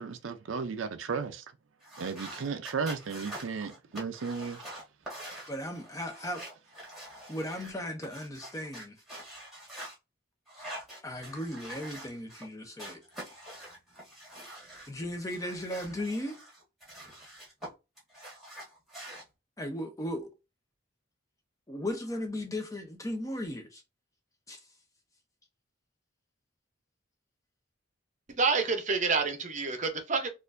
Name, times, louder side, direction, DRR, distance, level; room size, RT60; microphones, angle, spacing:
voice 1, 0.0-1.4 2.0-4.6, right 5 dB, 75° right, 0.5 m, -34 dB
sound 1, 1.8-7.7 8.0-9.9 10.5-12.5 12.8-14.9 15.3-17.7 18.0-19.2, right 1 dB, ahead, 1.5 m, -45 dB
voice 2, 5.5-6.4 6.8-6.9 7.3-9.0 11.0-13.0 14.9-16.4 19.6-20.3 21.7-23.8 24.5-24.7, left 1 dB, 15° left, 0.7 m, -36 dB
voice 3, 28.3-30.3, right 4 dB, 35° right, 0.7 m, -28 dB
4.3 x 2.5 x 2.5 m
head